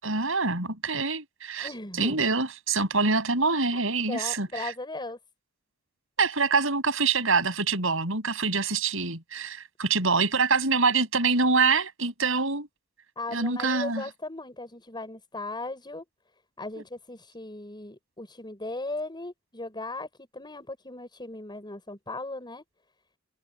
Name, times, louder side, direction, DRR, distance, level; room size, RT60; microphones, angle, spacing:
voice 1, 0.0-1.7 2.0-4.7 6.2-12.7 13.3-14.0, right 4 dB, 70° right, 7.6 m, -25 dB
voice 2, 1.6-2.2 3.7-5.2 13.2-16.0 16.6-20.1 20.3-22.6, left 2 dB, 20° left, 6.4 m, -37 dB
head